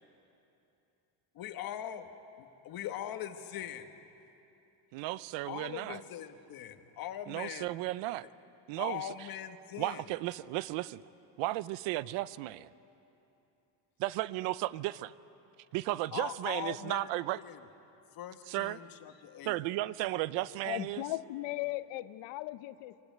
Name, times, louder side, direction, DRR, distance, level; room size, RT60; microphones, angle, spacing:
voice 1, 1.3-2.1 2.4-3.9 5.4-7.7 8.8-10.0 16.1-17.6 18.2-19.6, left 11 dB, 55° left, 8 dB, 1.3 m, -41 dB
voice 2, 4.9-6.0 7.3-8.3 8.7-9.1 9.8-11.0 11.4-12.7 14.0-15.1 15.7-17.4 18.5-18.8 19.5-21.0, right 17 dB, 85° right, 18 dB, 0.7 m, -34 dB
voice 3, 20.6-23.0, left 17 dB, 85° left, 14 dB, 0.8 m, -37 dB
24.5 x 16.5 x 9.3 m, 2.8 s
cardioid pair, 145°, 43 cm